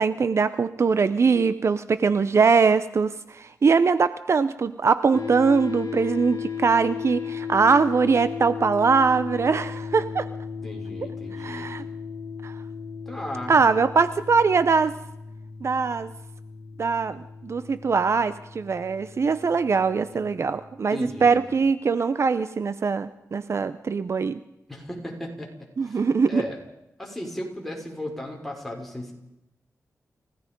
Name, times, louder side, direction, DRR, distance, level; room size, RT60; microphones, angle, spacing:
voice 1, 0.0-10.3 11.4-11.8 12.4-12.5 13.5-14.9 15.6-16.1 16.8-24.4 25.8-26.4, right 5 dB, 50° right, 13 dB, 0.7 m, -22 dB
sound 1, 5.1-20.4, left 6 dB, 65° left, 1.9 m, -36 dB
voice 2, 10.6-11.7 13.1-13.6 20.9-21.4 24.7-26.0 26.3-26.6 27.0-29.1, left 1 dB, 5° left, 0 dB, 5.4 m, -35 dB
29.5 x 16.5 x 5.3 m, 0.87 s
wide cardioid pair, 100°, 6 cm